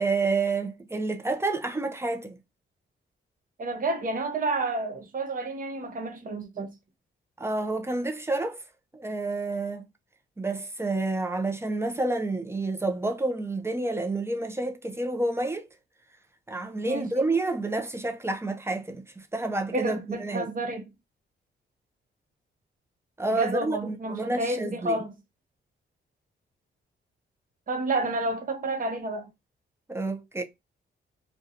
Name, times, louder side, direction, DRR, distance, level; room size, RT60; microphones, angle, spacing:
voice 1, 0.0-2.4 7.4-8.6 8.9-9.8 10.4-15.7 16.5-20.5 23.2-25.0 29.9-30.4, right 2 dB, 10° right, 0.5 m, -29 dB
voice 2, 3.6-6.7 16.8-17.2 19.7-20.8 23.3-25.1 27.7-29.2, right 2 dB, 40° right, 0.9 m, -30 dB
2.7 x 2.2 x 2.5 m
cardioid pair, 100°, 21 cm